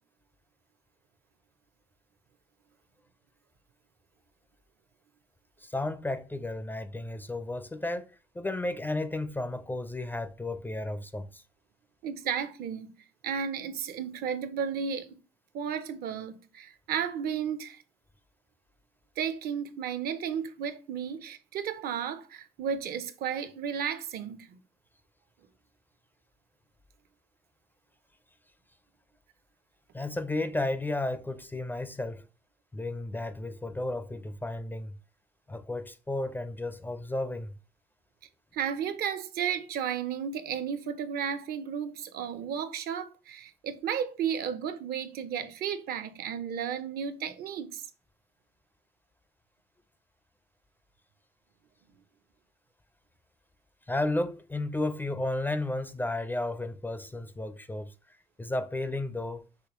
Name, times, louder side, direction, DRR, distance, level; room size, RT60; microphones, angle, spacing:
voice 1, 5.6-8.1 8.3-11.4 29.9-32.3 32.7-35.0 35.5-37.5 53.9-57.9 58.4-59.4, left 2 dB, 10° left, 0.4 m, -33 dB
voice 2, 12.0-12.9 13.2-15.2 15.5-17.8 19.2-24.6 38.5-47.9, right 8 dB, 65° right, 0.6 m, -33 dB
5.6 x 3.1 x 3.0 m
cardioid pair, 110°, 17 cm